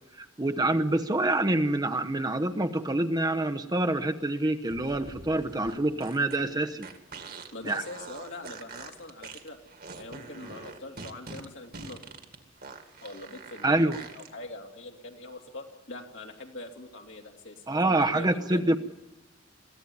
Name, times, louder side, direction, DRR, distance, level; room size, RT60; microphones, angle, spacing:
voice 1, 0.4-6.9 7.6-7.8 13.6-14.0 17.7-18.8, right 2 dB, 20° right, 7 dB, 0.9 m, -26 dB
sound 1, 4.6-14.3, right 4 dB, 50° right, 2.1 m, -44 dB
voice 2, 7.5-9.6 9.9-12.0 13.0-18.8, left 2 dB, 65° left, 2 dB, 2.8 m, -43 dB
22.5 x 15.5 x 9.5 m, 0.99 s
head